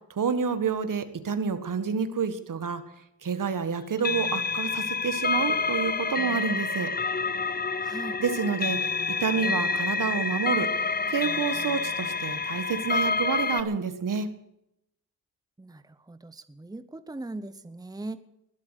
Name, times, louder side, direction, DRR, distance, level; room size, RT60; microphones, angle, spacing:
voice 1, 0.1-2.8 3.2-6.9 8.2-10.7 11.1-14.3, right 6 dB, 65° right, 10 dB, 1.7 m, -29 dB
sound 1, 4.0-13.6, left 4 dB, 25° left, 0.7 m, -28 dB
voice 2, 7.8-8.2 15.6-18.2, right 2 dB, 10° right, 12 dB, 0.9 m, -40 dB
21.0 x 8.2 x 8.2 m, 0.80 s
cardioid pair, 90°, 35 cm